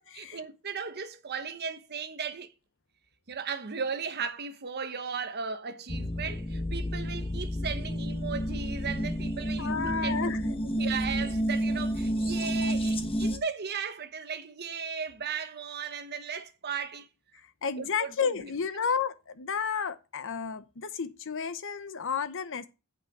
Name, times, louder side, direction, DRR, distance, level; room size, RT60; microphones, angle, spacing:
voice 1, 0.2-2.5 3.3-17.1 17.8-18.5 18.8-18.9, right 6 dB, 50° right, 1.1 m, -36 dB
sound 1, 5.9-13.4, equal, 25° left, 1.0 m, -30 dB
voice 2, 9.6-10.4 17.6-22.7, left 6 dB, 60° left, 0.9 m, -32 dB
8.4 x 5.4 x 6.0 m
head